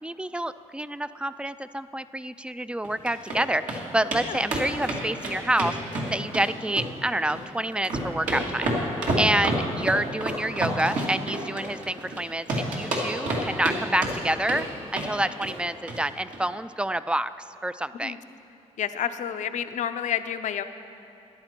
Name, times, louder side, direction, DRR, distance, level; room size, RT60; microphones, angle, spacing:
voice 1, 0.0-5.8 6.1-8.7 9.2-14.7 14.9-18.2, right 1 dB, 10° right, 14 dB, 0.3 m, -28 dB
sound 1, 2.8-3.4 3.7-3.8 4.1-4.2 4.5-6.5 6.8-7.4 7.7-12.2 12.5-13.8 14.0-14.6 14.9-15.1 15.4-15.6 15.9-16.0 16.3-16.4, right 1 dB, 80° right, 2.2 m, -28 dB
voice 2, 18.8-20.6, left 9 dB, 70° left, 10 dB, 0.6 m, -29 dB
14.0 x 10.5 x 4.5 m, 2.8 s
cardioid pair, 80°, 13 cm